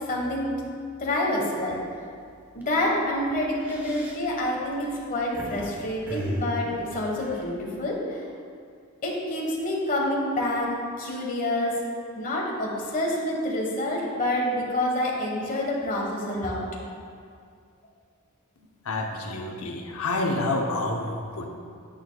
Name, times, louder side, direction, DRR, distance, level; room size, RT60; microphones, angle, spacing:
voice 1, 0.1-0.5 1.0-1.8 2.5-8.2 9.0-11.8 12.1-16.7, left 1 dB, 40° left, -3 dB, 1.4 m, -27 dB
sound 1, 1.7-2.0 2.4-2.6 3.4-5.7 6.1-7.9, equal, 10° right, 1.1 m, -35 dB
voice 2, 18.8-21.5, left 2 dB, 75° left, 2 dB, 0.9 m, -28 dB
10.0 x 8.7 x 2.3 m, 2.3 s
head